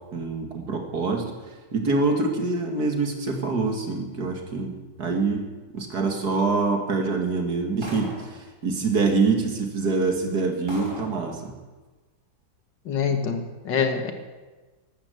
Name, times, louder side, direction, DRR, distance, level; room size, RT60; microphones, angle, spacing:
voice 1, 0.1-1.3 1.7-5.5 5.7-11.5, right 3 dB, 55° right, 3 dB, 2.6 m, -25 dB
sound 1, 7.8-8.4 9.4-9.5 10.1-10.2 10.7-11.2, equal, 15° right, 3.3 m, -39 dB
voice 2, 12.9-14.1, left 6 dB, 70° left, 7 dB, 2.1 m, -25 dB
14.0 x 12.0 x 8.3 m, 1.2 s
omnidirectional pair, 2.0 m